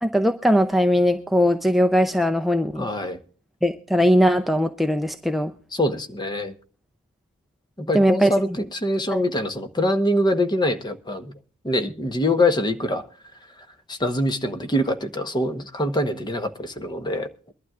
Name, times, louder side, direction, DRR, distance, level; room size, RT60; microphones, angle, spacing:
voice 1, 0.0-2.9 3.6-5.5 7.9-8.3 9.1-9.2, equal, ahead, 6 dB, 0.5 m, -20 dB
voice 2, 2.8-3.2 5.7-6.5 7.8-11.3 11.6-13.0 13.9-17.5, left 1 dB, 20° left, 8 dB, 1.0 m, -24 dB
22.5 x 12.0 x 2.4 m, 0.42 s
head